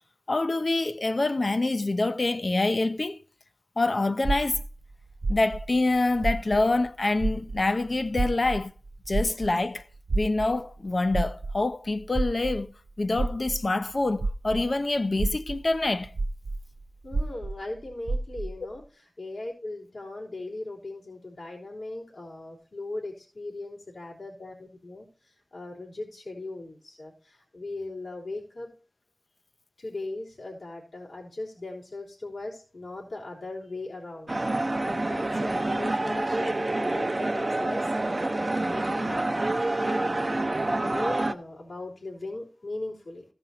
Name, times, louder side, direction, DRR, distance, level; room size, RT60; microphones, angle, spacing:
voice 1, 0.3-3.2 3.8-4.6 5.3-8.7 9.1-9.8 10.1-12.7 13.0-16.1, left 2 dB, 55° left, 0.7 m, -26 dB
sound 1, 4.2-6.9 7.2-14.7 15.1-18.6, right 3 dB, 75° right, 0.4 m, -31 dB
voice 2, 17.0-28.7 29.8-40.2 40.5-43.3, left 2 dB, 80° left, 3.7 m, -39 dB
sound 2, 34.3-41.3, right 2 dB, 40° right, 0.7 m, -27 dB
14.5 x 5.4 x 4.3 m
wide cardioid pair, 50°, 0 cm